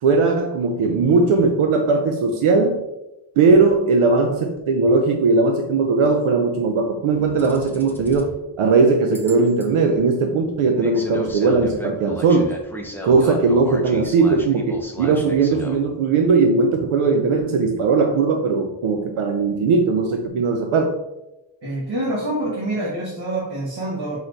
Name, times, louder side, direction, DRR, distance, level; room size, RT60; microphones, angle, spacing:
voice 1, 0.0-2.8 3.4-12.5 13.0-21.0, right 4 dB, 80° right, 4 dB, 0.6 m, -18 dB
sound 1, 7.1-8.4 9.1-9.7 10.8-15.8, equal, 5° left, 0.4 m, -35 dB
voice 2, 21.6-24.2, right 1 dB, 55° right, -6 dB, 1.2 m, -26 dB
4.6 x 4.2 x 2.5 m, 0.94 s
wide cardioid pair, 145°, 49 cm